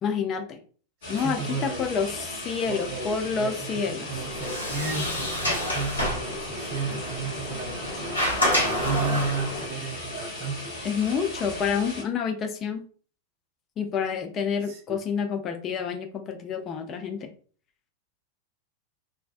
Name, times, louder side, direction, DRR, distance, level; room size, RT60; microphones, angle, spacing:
voice 1, 0.0-0.6 1.1-4.1 10.8-12.8 13.8-17.3, left 6 dB, 30° left, 5 dB, 0.4 m, -28 dB
sound 1, 1.0-12.0, left 1 dB, 60° left, 1.0 m, -37 dB
voice 2, 1.1-1.8 2.7-10.6 14.7-15.0, right 4 dB, 45° right, 3 dB, 0.7 m, -33 dB
Sliding door, 4.1-9.6, equal, 85° left, 0.7 m, -29 dB
2.4 x 2.1 x 2.4 m, 0.42 s
figure-of-eight pair, 90°, 0 cm